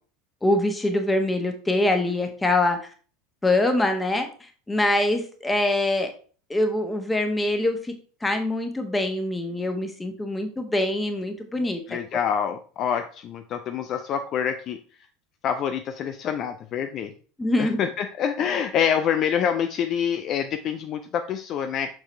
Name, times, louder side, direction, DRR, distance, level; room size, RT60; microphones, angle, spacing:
voice 1, 0.4-2.8 3.4-4.3 4.7-6.1 6.5-7.9 8.2-11.8 17.4-17.8, left 1 dB, 10° left, 5 dB, 1.4 m, -24 dB
voice 2, 11.9-14.8 15.4-17.1 17.6-21.9, left 8 dB, 40° left, 7 dB, 0.5 m, -26 dB
6.4 x 5.9 x 3.2 m, 0.40 s
figure-of-eight pair, 75°, 0 cm